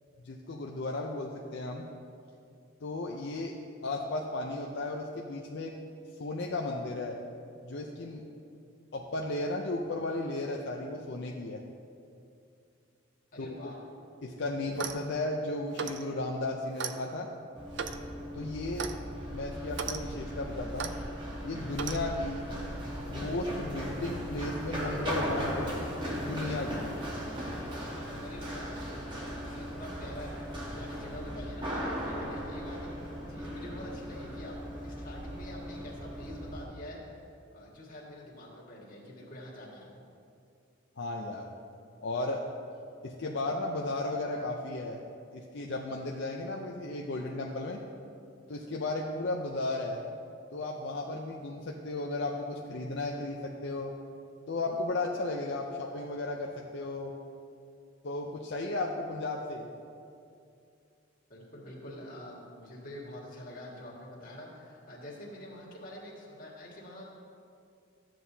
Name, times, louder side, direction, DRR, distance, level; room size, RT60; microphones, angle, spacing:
voice 1, 0.2-1.9 2.8-3.5 3.8-5.8 6.2-7.2 7.6-8.2 8.9-11.6 13.4-13.7 14.2-17.3 18.3-18.9 19.3-21.0 21.4-22.5 23.1-25.8 26.1-26.9 41.0-41.5 42.0-42.4 43.0-45.0 45.3-47.8 48.5-50.0 50.5-53.9 54.5-57.1 58.0-59.7, left 2 dB, 60° left, -1 dB, 0.5 m, -35 dB
voice 2, 13.3-13.8 28.2-28.7 29.2-37.2 37.5-39.9 61.3-67.0, left 1 dB, 45° left, -5 dB, 1.9 m, -46 dB
Clock, 14.7-15.1 15.7-16.0 16.8-17.0 17.7-18.0 18.8-19.0 19.7-20.0 20.8-20.9 21.7-22.0, right 6 dB, 60° right, 0.5 m, -36 dB
Run, 17.6-36.6, equal, 25° right, 1.3 m, -37 dB
13.0 x 7.6 x 2.8 m, 2.5 s
head